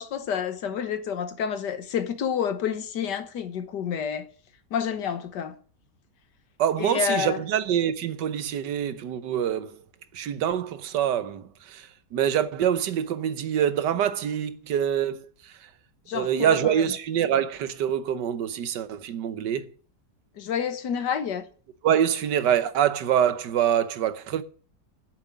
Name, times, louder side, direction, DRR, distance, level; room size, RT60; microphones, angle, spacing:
voice 1, 0.0-4.3 4.7-5.5 6.8-7.4 16.1-16.8 20.4-21.5, left 8 dB, 80° left, 1.8 m, -29 dB
voice 2, 6.6-9.8 10.1-15.7 16.1-19.7 21.8-24.4, right 9 dB, 90° right, 1.5 m, -25 dB
8.0 x 7.3 x 8.4 m
omnidirectional pair, 1.8 m